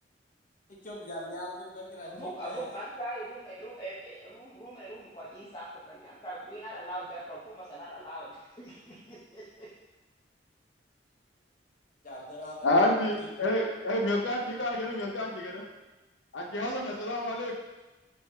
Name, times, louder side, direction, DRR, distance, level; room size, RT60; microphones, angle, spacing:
voice 1, 0.7-2.8 12.0-12.7 13.2-13.3, left 1 dB, 45° left, -3 dB, 0.9 m, -41 dB
voice 2, 2.1-9.7, right 1 dB, 25° left, -9 dB, 0.7 m, -41 dB
voice 3, 12.6-15.6 16.3-17.5, left 1 dB, 80° left, 1 dB, 0.6 m, -28 dB
4.4 x 3.2 x 3.3 m, 1.1 s
head